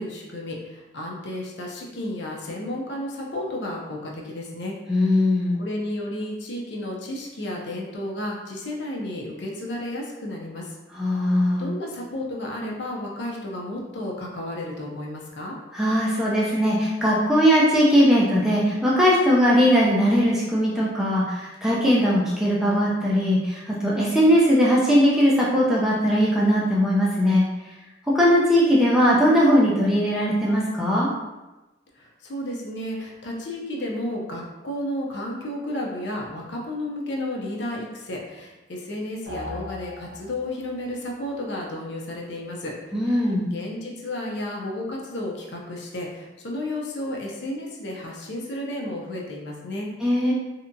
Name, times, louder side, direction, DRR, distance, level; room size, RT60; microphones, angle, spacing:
voice 1, 0.0-4.7 5.1-5.3 5.6-10.7 11.6-15.5 32.0-42.7 43.0-49.9, left 1 dB, 65° left, -1 dB, 0.5 m, -32 dB
voice 2, 4.9-5.6 11.0-11.7 15.7-27.4 28.1-31.1 42.9-43.5 50.0-50.3, equal, 5° right, -6 dB, 0.4 m, -19 dB
sound 1, 39.3-40.8, left 1 dB, 60° right, 0.8 m, -37 dB
2.8 x 2.2 x 2.6 m, 1.1 s
head